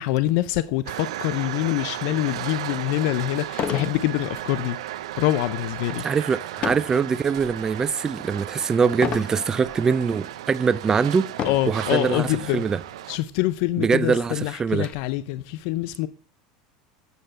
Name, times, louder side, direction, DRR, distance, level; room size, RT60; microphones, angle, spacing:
voice 1, 0.0-4.8 5.2-6.0 11.4-12.6 13.1-16.1, left 15 dB, 65° left, 0.4 m, -25 dB
sound 1, 0.9-13.2, right 14 dB, 90° right, 0.4 m, -35 dB
sound 2, 2.6-2.7 3.5-4.0 4.4-4.7 6.6-7.0 7.6-8.0 9.0-9.4 10.1-10.2 11.3-11.8 12.8-12.9 13.3-13.4 13.8-14.9, left 8 dB, 40° left, 0.8 m, -30 dB
voice 2, 6.0-11.3 11.7-12.8 13.8-14.9, right 5 dB, 20° right, 0.3 m, -23 dB
sound 3, 9.1-10.0 10.3-10.6, right 2 dB, 5° right, 1.9 m, -47 dB
8.0 x 6.5 x 5.4 m
supercardioid pair, 120°, 3 cm